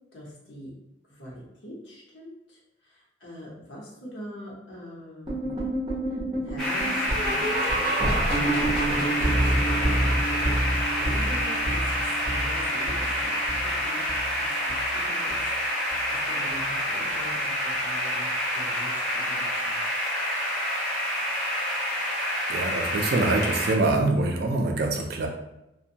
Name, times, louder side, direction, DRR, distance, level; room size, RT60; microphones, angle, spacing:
voice 1, 0.1-0.7 1.1-5.6 6.1-14.0 14.4-19.8, equal, 75° left, -5 dB, 0.8 m, -44 dB
sound 1, 5.3-14.4 14.7-15.0 15.3-15.4 15.9-16.0 16.5-16.6, right 1 dB, 25° right, 0.9 m, -28 dB
sound 2, 6.6-23.7, equal, 5° left, 0.7 m, -28 dB
voice 2, 22.5-25.3, right 2 dB, 55° right, 2 dB, 0.3 m, -24 dB
2.5 x 2.1 x 2.7 m, 0.90 s
head